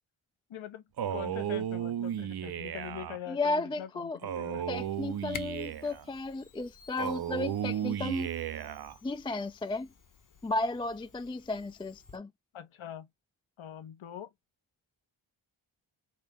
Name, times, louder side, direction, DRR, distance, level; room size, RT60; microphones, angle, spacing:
voice 1, 0.5-0.8 1.1-4.6 12.5-13.1 13.6-14.3, left 9 dB, 75° left, 1.0 m, -43 dB
Male speech man speaking, 1.0-3.2 4.2-6.0 7.0-9.0, right 10 dB, 50° right, 0.6 m, -34 dB
voice 2, 3.3-4.2 4.7-8.3 9.0-9.9 10.4-12.3, left 2 dB, 10° left, 0.3 m, -34 dB
Camera, 4.7-12.2, left 5 dB, 40° left, 1.1 m, -52 dB
4.2 x 2.2 x 3.5 m
cardioid pair, 50°, 49 cm